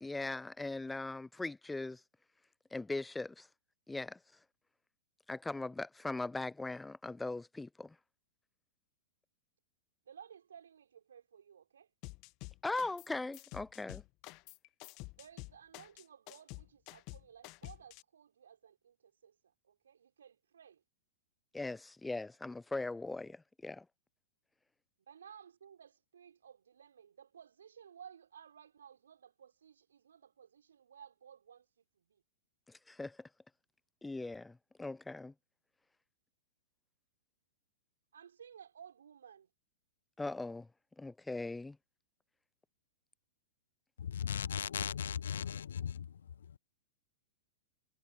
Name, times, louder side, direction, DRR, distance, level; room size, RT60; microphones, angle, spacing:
voice 1, 0.0-2.0 2.7-3.5 3.9-4.2 5.3-8.0 12.6-14.0 21.5-23.9 32.7-33.3 34.0-35.3 40.2-40.7 41.0-41.8, left 2 dB, 5° left, 0.4 m, -40 dB
voice 2, 10.1-11.9 15.2-19.3 19.6-20.8 25.1-32.2 38.1-39.5, right 8 dB, 65° right, 4.6 m, -57 dB
sound 1, 12.0-13.1 13.3-18.0, left 26 dB, 40° left, 1.1 m, -49 dB
voice 3, 44.1-46.6, left 8 dB, 65° left, 1.1 m, -38 dB
figure-of-eight pair, 100°, 0 cm